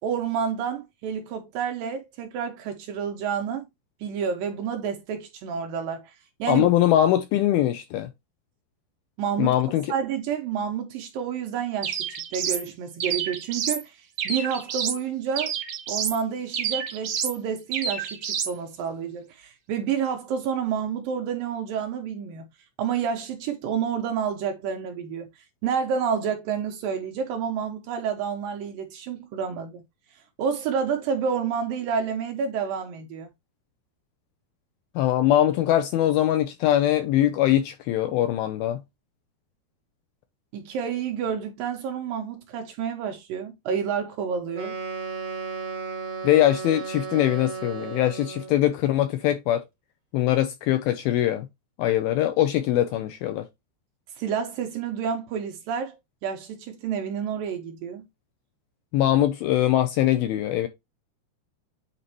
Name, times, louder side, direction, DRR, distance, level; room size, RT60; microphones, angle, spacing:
voice 1, 0.0-3.7 4.0-6.1 6.4-6.7 9.2-9.6 9.9-12.1 12.3-15.5 15.9-22.5 22.8-25.3 25.6-29.8 30.4-33.3 40.5-44.8 54.2-56.0 56.2-58.0, right 7 dB, 80° right, 2.1 m, -29 dB
voice 2, 6.5-8.1 9.4-9.9 35.0-38.8 46.2-49.6 50.1-51.5 51.8-53.5 58.9-60.7, left 12 dB, 90° left, 2.2 m, -22 dB
sound 1, 11.8-12.7 13.0-13.8 14.2-15.0 15.4-16.2 16.5-17.4 17.7-18.5, right 8 dB, 60° right, 2.7 m, -29 dB
Wind instrument woodwind instrument, 44.5-48.6, right 5 dB, 35° right, 2.3 m, -34 dB
8.7 x 4.1 x 3.0 m
omnidirectional pair, 5.0 m